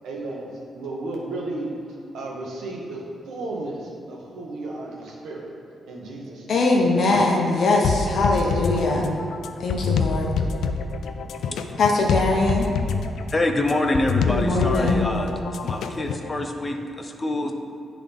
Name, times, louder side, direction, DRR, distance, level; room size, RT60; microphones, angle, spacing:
voice 1, 0.0-5.5 5.8-6.7 7.1-7.6, right 2 dB, 90° right, -2 dB, 1.2 m, -34 dB
voice 2, 6.5-9.1 9.6-10.4 11.8-12.7 14.3-15.1, left 2 dB, 50° left, 0 dB, 0.9 m, -21 dB
sound 1, 7.8-16.3, left 5 dB, 90° left, 0.3 m, -26 dB
voice 3, 10.4-11.8 12.7-15.3 15.6-17.5, left 1 dB, 15° left, 4 dB, 0.4 m, -27 dB
10.5 x 3.7 x 3.5 m, 2.4 s
wide cardioid pair, 170°, 0 cm